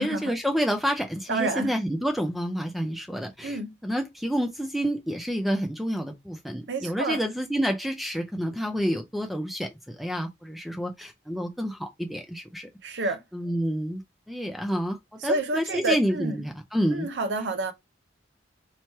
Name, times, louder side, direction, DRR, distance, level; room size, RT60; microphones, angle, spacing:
voice 1, 0.0-12.7 13.3-14.0 14.3-17.1, equal, ahead, 0.4 m, -29 dB
voice 2, 1.3-1.7 3.4-3.7 6.7-7.2 12.8-13.2 15.2-16.3 16.9-17.7, right 2 dB, 70° right, 0.6 m, -28 dB
3.0 x 2.9 x 4.4 m
head